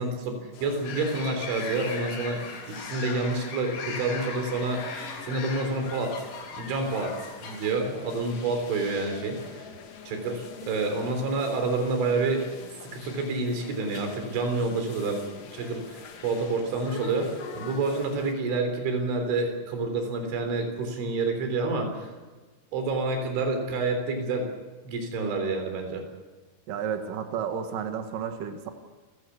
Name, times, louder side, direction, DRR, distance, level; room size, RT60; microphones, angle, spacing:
voice 1, 0.0-2.4 2.7-6.2 6.6-7.1 7.4-9.7 10.1-12.5 12.9-15.2 15.5-17.3 17.6-22.1 22.7-24.5 24.9-26.0, right 3 dB, 75° right, 5 dB, 6.0 m, -28 dB
sound 1, 0.5-18.3, left 6 dB, 65° left, 1.6 m, -44 dB
sound 2, 0.8-7.8, left 5 dB, 80° left, 6.0 m, -38 dB
voice 2, 26.7-28.7, right 7 dB, 60° right, 6 dB, 2.6 m, -32 dB
29.0 x 16.0 x 7.0 m, 1.3 s
omnidirectional pair, 5.5 m